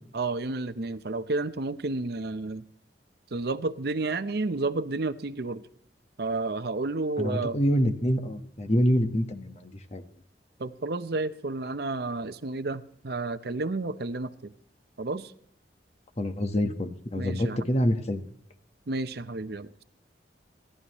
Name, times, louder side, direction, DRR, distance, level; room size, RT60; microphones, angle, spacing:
voice 1, 0.1-2.6 3.3-5.6 6.2-7.6 10.6-14.3 15.0-15.3 17.1-17.6 18.9-19.8, right 3 dB, 60° right, 0.7 m, -31 dB
voice 2, 7.2-10.0 16.2-18.3, equal, 40° left, 1.2 m, -26 dB
29.5 x 11.5 x 3.1 m
head